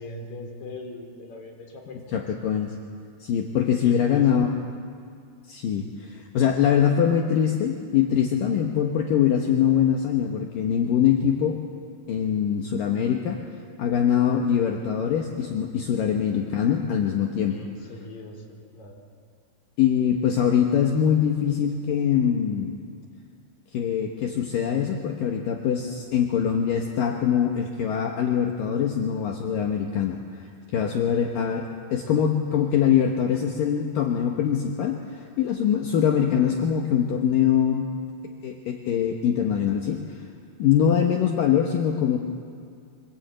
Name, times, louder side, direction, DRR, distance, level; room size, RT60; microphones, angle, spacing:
voice 1, 0.0-2.3 3.5-4.6 17.4-19.0, left 2 dB, 45° left, 1 dB, 4.6 m, -41 dB
voice 2, 2.1-2.8 3.2-4.5 5.5-11.6 12.1-13.4 13.8-17.6 19.8-22.8 23.7-30.2 30.7-37.9 38.4-40.2 40.6-42.2, left 8 dB, 65° left, 2 dB, 2.7 m, -23 dB
24.5 x 20.0 x 9.0 m, 2.3 s
omnidirectional pair, 4.7 m